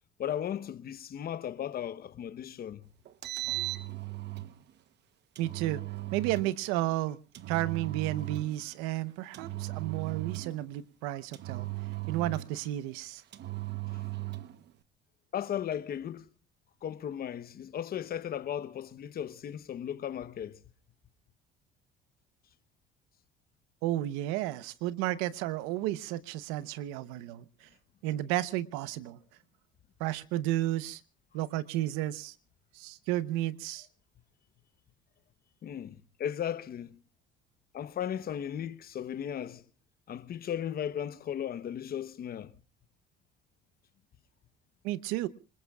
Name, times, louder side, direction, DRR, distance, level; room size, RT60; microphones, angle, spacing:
voice 1, 0.2-2.9 13.9-14.0 15.3-16.3 16.8-20.6 35.6-37.0 37.7-39.6 40.1-42.5, left 9 dB, 45° left, 1.0 m, -36 dB
Engine, 3.1-4.5 5.4-6.5 7.3-8.6 9.3-10.6 11.3-12.7 13.3-14.6, right 17 dB, 55° right, 1.0 m, -37 dB
voice 2, 5.4-5.8 6.1-7.2 7.5-11.7 12.1-13.2 23.8-27.7 28.0-29.2 30.0-31.0 31.3-32.3 32.7-33.9 44.8-45.3, right 15 dB, 90° right, 0.9 m, -32 dB
26.5 x 20.5 x 2.4 m
supercardioid pair, 95°, 21 cm